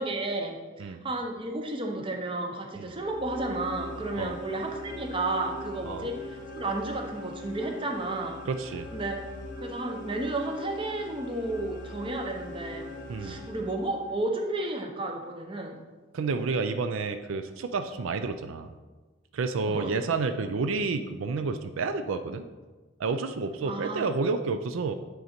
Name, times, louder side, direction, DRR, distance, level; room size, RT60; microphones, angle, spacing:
voice 1, 0.0-8.4 8.9-9.1 9.6-12.9 13.2-15.8 19.7-19.9 23.7-24.1, right 2 dB, 25° right, 2 dB, 0.7 m, -32 dB
sound 1, 2.9-14.2, left 1 dB, 40° left, 0.8 m, -41 dB
voice 2, 8.5-8.9 13.1-13.4 16.1-18.7 19.3-22.4 23.0-24.9, right 4 dB, 80° right, 8 dB, 0.4 m, -30 dB
9.3 x 3.9 x 4.3 m, 1.3 s
head